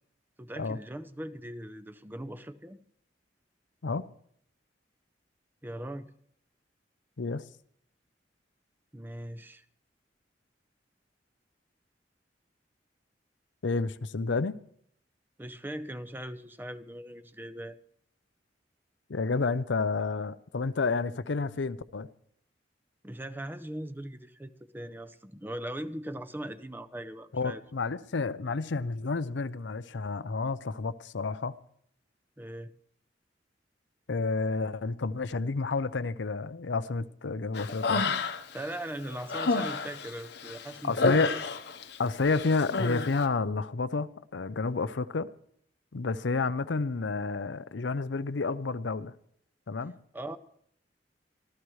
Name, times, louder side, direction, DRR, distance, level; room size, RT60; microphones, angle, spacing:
voice 1, 0.4-2.8 5.6-6.1 8.9-9.6 15.4-17.8 23.0-27.6 32.4-32.7 38.5-41.4 50.1-50.4, right 1 dB, 10° right, 0.6 m, -40 dB
voice 2, 13.6-14.6 19.1-22.1 27.3-31.5 34.1-38.0 40.8-41.3 42.0-45.3 45.9-49.1 49.7-49.9, left 4 dB, 80° left, 0.6 m, -30 dB
Human voice, 37.5-38.6 39.0-42.0 42.2-43.1, left 3 dB, 65° left, 1.0 m, -30 dB
24.5 x 15.0 x 3.2 m
head